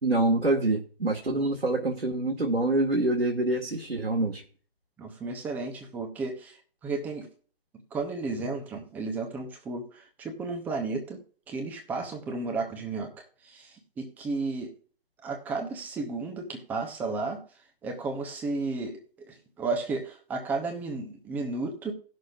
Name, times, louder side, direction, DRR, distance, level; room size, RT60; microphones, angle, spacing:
voice 1, 0.0-4.4, right 2 dB, 80° right, 1.9 m, -26 dB
voice 2, 5.0-6.6 6.8-7.3 7.9-11.2 11.5-14.7 15.2-17.4 17.8-19.0 19.3-21.9, right 3 dB, 5° right, 0.8 m, -33 dB
18.0 x 6.4 x 2.4 m
figure-of-eight pair, 140°, 31 cm